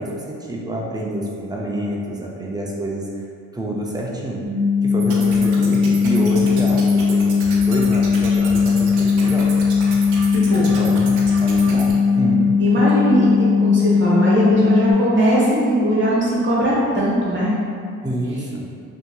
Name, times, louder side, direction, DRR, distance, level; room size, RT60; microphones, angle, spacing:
voice 1, 0.0-3.3 3.5-4.4 4.8-9.5 10.8-12.7 18.0-18.7, right 1 dB, 15° right, -3 dB, 0.4 m, -27 dB
sound 1, 4.4-14.9, left 5 dB, 5° left, 1.0 m, -18 dB
sound 2, 5.0-11.9, right 2 dB, 85° right, 0.6 m, -33 dB
voice 2, 10.3-10.6 12.6-17.5, right 1 dB, 40° right, -7 dB, 1.0 m, -19 dB
2.7 x 2.7 x 2.2 m, 2.3 s
cardioid pair, 90°, 30 cm